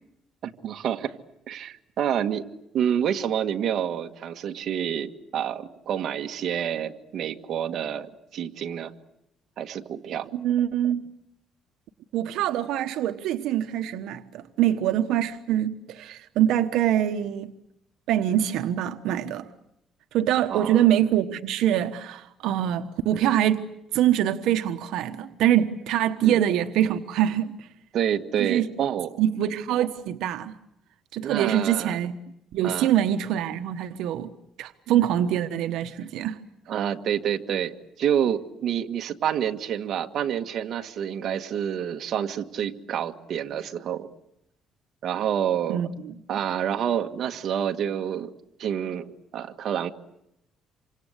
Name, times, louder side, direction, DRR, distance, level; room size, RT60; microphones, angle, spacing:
voice 1, 0.4-1.1 1.5-2.5 2.7-8.9 9.6-10.3 20.5-20.8 26.2-26.4 27.9-29.2 31.2-32.0 32.6-32.9 35.9-36.0 36.7-44.1 45.0-45.9 46.3-48.3 48.6-49.9, right 9 dB, 50° right, 5 dB, 1.7 m, -28 dB
voice 2, 10.3-11.1 12.1-17.5 18.1-19.5 20.1-23.7 23.9-27.7 28.4-28.7 29.2-30.5 31.1-32.1 32.5-34.3 34.6-36.4 45.7-46.1, right 11 dB, 80° right, 7 dB, 1.2 m, -24 dB
28.0 x 25.5 x 8.2 m, 0.82 s
cardioid pair, 155°, 0 cm